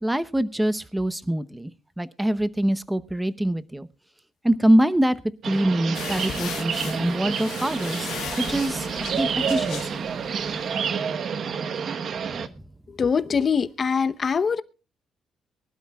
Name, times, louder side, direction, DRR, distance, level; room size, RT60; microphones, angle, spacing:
voice 1, 0.0-1.7 2.0-3.9 4.4-5.2 5.4-8.9 9.2-10.0 12.4-12.6, right 1 dB, 5° right, 0.8 m, -24 dB
sound 1, 5.4-12.5, right 6 dB, 50° right, 1.1 m, -29 dB
sound 2, 5.9-10.6, left 10 dB, 80° left, 1.9 m, -37 dB
voice 2, 13.0-14.6, left 6 dB, 35° left, 0.8 m, -23 dB
23.0 x 12.0 x 2.3 m
cardioid pair, 120°, 0 cm